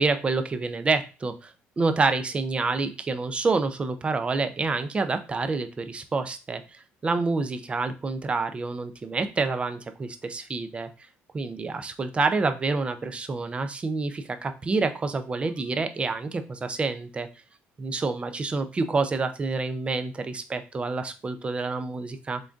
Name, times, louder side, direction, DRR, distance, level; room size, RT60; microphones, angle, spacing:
voice 1, 0.0-10.9 11.3-17.3 17.8-22.4, right 3 dB, 25° right, 9 dB, 0.5 m, -28 dB
3.8 x 3.5 x 2.5 m, 0.32 s
cardioid pair, 95°, 5 cm